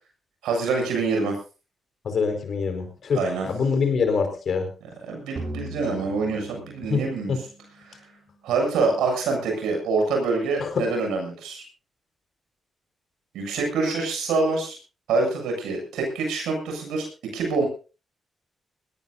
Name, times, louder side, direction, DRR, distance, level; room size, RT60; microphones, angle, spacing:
voice 1, 0.4-1.4 3.1-3.5 5.1-7.3 7.8-7.9 8.4-11.6 13.3-14.8 15.1-17.1 17.3-17.7, right 3 dB, 85° right, 2 dB, 7.4 m, -25 dB
voice 2, 2.0-4.7 6.9-7.0 7.3-7.4 10.6-10.8, left 5 dB, 65° left, 6 dB, 4.9 m, -24 dB
sound 1, 5.4-8.6, right 2 dB, 65° right, 7.8 m, -39 dB
20.5 x 18.0 x 2.7 m, 0.34 s
supercardioid pair, 45°, 0 cm